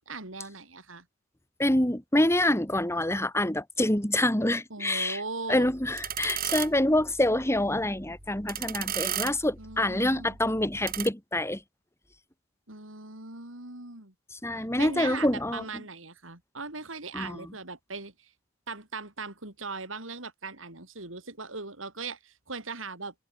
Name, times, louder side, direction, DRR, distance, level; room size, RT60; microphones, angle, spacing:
voice 1, 0.1-1.0 4.7-5.7 9.6-10.4 12.7-14.1 14.8-18.3 18.7-23.1, right 4 dB, 85° right, 6.2 m, -39 dB
voice 2, 1.6-5.2 5.5-11.6 14.4-15.6 17.1-17.5, left 1 dB, 15° left, 3.4 m, -26 dB
sound 1, 5.6-11.1, right 10 dB, 50° right, 3.9 m, -36 dB
head